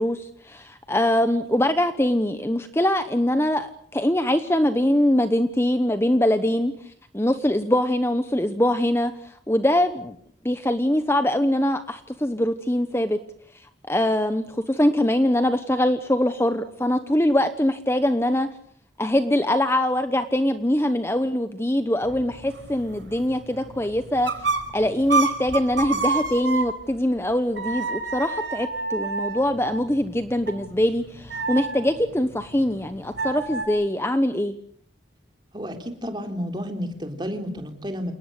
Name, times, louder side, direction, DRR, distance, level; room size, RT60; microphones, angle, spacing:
voice 1, 0.0-10.2 10.4-13.2 13.9-18.5 19.0-24.3 24.7-34.5, left 1 dB, 15° left, 9 dB, 1.0 m, -23 dB
sound 1, 22.0-27.0 27.6-33.7, right 3 dB, 75° right, 5.3 m, -30 dB
voice 2, 35.5-38.1, equal, 25° right, 5 dB, 3.6 m, -31 dB
28.5 x 19.0 x 8.2 m, 0.63 s
head